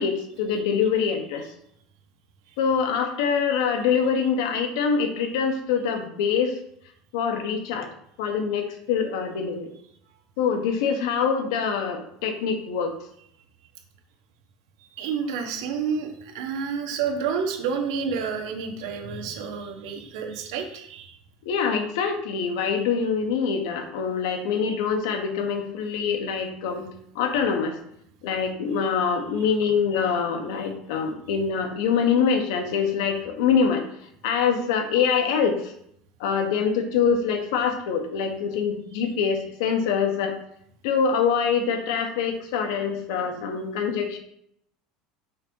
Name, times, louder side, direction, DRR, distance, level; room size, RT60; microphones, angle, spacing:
voice 1, 0.0-1.5 2.6-6.5 7.1-7.9 8.2-9.7 10.4-12.9 21.4-27.7 28.2-33.9 34.2-35.7 36.2-40.4 40.8-44.2, left 6 dB, 80° left, 4 dB, 1.0 m, -24 dB
voice 2, 15.0-21.2, right 6 dB, 85° right, 2 dB, 1.3 m, -29 dB
5.6 x 3.5 x 5.3 m, 0.71 s
cardioid pair, 175°, 2 cm